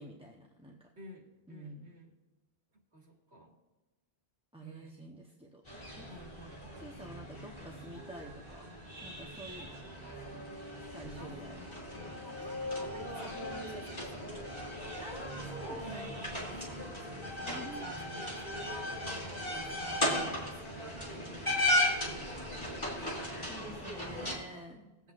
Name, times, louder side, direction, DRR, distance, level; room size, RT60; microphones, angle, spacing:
voice 1, 0.0-0.9 1.5-1.9 4.5-5.6 6.0-6.1 6.8-8.6 9.0-10.4 10.8-11.6 15.0-16.1 17.4-17.9 23.5-24.9, right 1 dB, 5° right, -1 dB, 0.7 m, -48 dB
voice 2, 1.0-2.1 2.9-3.5 4.6-5.1 6.1-6.6 11.2-15.0 15.8-16.1 16.5-21.3 21.9-23.3 24.4-24.6, right 1 dB, 85° right, 0 dB, 2.3 m, -51 dB
sound 1, 5.7-24.4, left 1 dB, 25° left, 2.8 m, -37 dB
20.0 x 8.1 x 2.5 m, 1.1 s
omnidirectional pair, 1.1 m